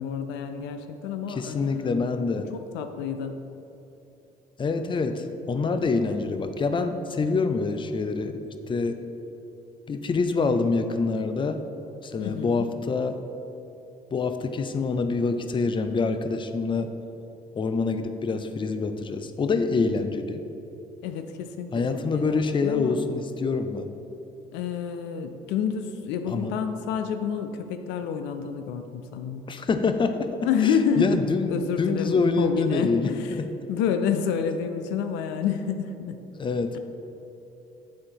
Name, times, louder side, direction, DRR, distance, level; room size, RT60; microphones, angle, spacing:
voice 1, 0.0-2.0 2.5-3.4 12.2-12.7 21.0-23.0 24.5-29.5 30.4-31.2 31.5-33.4 33.7-36.2, left 7 dB, 80° left, 8 dB, 0.4 m, -29 dB
voice 2, 1.3-2.5 4.6-9.0 9.9-11.6 12.0-13.2 14.1-16.9 17.6-20.4 21.7-23.9 26.3-26.5 29.5-33.5 36.4-36.8, left 4 dB, 25° left, 9 dB, 0.5 m, -26 dB
8.4 x 3.7 x 4.5 m, 2.9 s
supercardioid pair, 65°, 18 cm